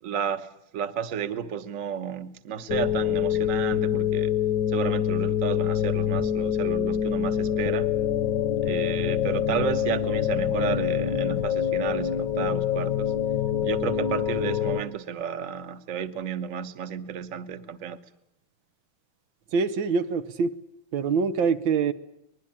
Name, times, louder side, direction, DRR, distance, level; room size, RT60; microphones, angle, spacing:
voice 1, 0.0-4.3 4.7-7.9 8.6-13.1 13.6-18.0, right 8 dB, 50° right, 1.4 m, -32 dB
sound 1, 2.7-14.8, left 9 dB, 70° left, 1.7 m, -25 dB
voice 2, 19.5-20.6 20.9-21.9, right 5 dB, 85° right, 1.9 m, -24 dB
24.0 x 21.0 x 8.7 m
omnidirectional pair, 2.0 m